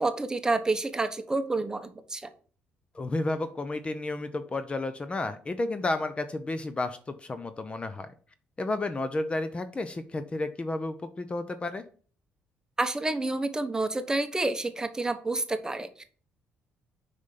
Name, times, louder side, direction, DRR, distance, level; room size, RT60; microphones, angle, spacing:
voice 1, 0.0-2.3 12.8-16.0, right 2 dB, 15° right, 9 dB, 1.0 m, -29 dB
voice 2, 2.9-8.1 8.6-11.8, left 2 dB, 30° left, 11 dB, 0.8 m, -32 dB
6.1 x 5.3 x 5.8 m, 0.43 s
supercardioid pair, 75°, 4 cm